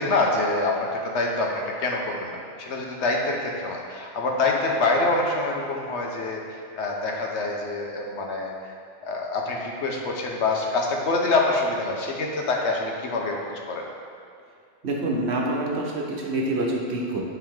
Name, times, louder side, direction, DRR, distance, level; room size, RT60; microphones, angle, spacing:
voice 1, 0.0-8.5 9.1-13.4 13.7-13.8, left 3 dB, 80° left, 0 dB, 1.2 m, -26 dB
voice 2, 14.8-17.2, right 2 dB, 70° right, -1 dB, 1.2 m, -26 dB
10.5 x 3.6 x 3.6 m, 2.3 s
omnidirectional pair, 1.1 m